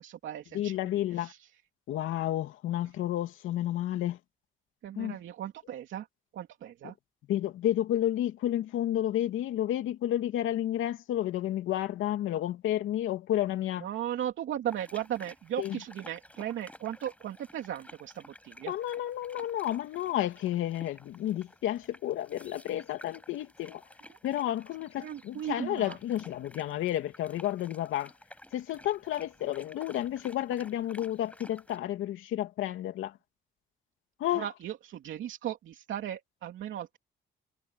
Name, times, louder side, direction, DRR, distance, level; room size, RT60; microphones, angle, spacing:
voice 1, 0.0-0.8 1.2-1.4 4.8-6.1 6.3-6.9 13.8-18.7 25.0-26.0 34.3-37.0, right 11 dB, 75° right, 3.0 m, -37 dB
voice 2, 0.5-1.3 1.9-4.2 5.0-5.2 6.8-6.9 7.3-13.9 15.6-15.8 18.7-23.8 24.2-28.1 28.5-33.2 34.2-34.5, left 12 dB, 85° left, 2.9 m, -31 dB
sound 1, 14.7-31.8, left 1 dB, 5° left, 7.7 m, -53 dB
cardioid pair, 90°, 20 cm